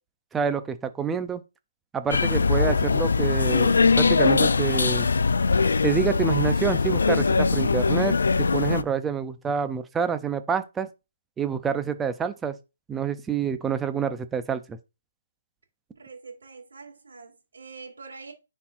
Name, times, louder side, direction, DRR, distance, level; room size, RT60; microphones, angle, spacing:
voice 1, 0.3-1.4 1.9-5.1 5.8-10.9 11.4-12.6 12.9-14.8, right 6 dB, 5° right, 0.4 m, -27 dB
sound 1, 2.1-8.8, left 4 dB, 85° left, 0.4 m, -21 dB
voice 2, 15.9-18.3, right 4 dB, 90° right, 2.1 m, -44 dB
9.5 x 4.2 x 2.5 m
hypercardioid pair, 170°, 0 cm